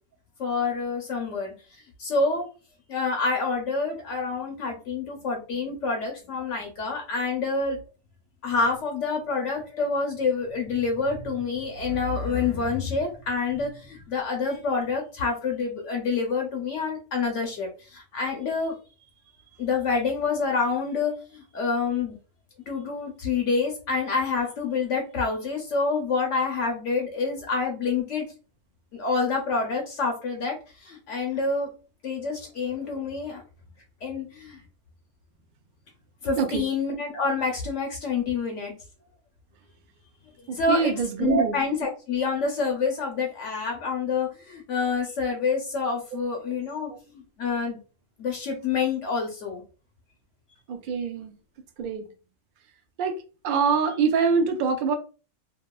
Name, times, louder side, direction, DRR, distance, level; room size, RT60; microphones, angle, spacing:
voice 1, 0.4-1.5 2.0-2.5 2.9-7.8 8.4-18.8 19.6-22.2 22.7-28.3 28.9-31.7 32.0-33.4 34.0-34.6 36.2-38.7 40.5-47.8 48.2-49.6, left 4 dB, 70° left, 0.9 m, -27 dB
voice 2, 40.5-41.5 50.7-51.4 51.8-52.0 53.0-53.2 53.4-54.9, right 5 dB, 85° right, 0.4 m, -24 dB
2.8 x 2.2 x 2.2 m
omnidirectional pair, 1.4 m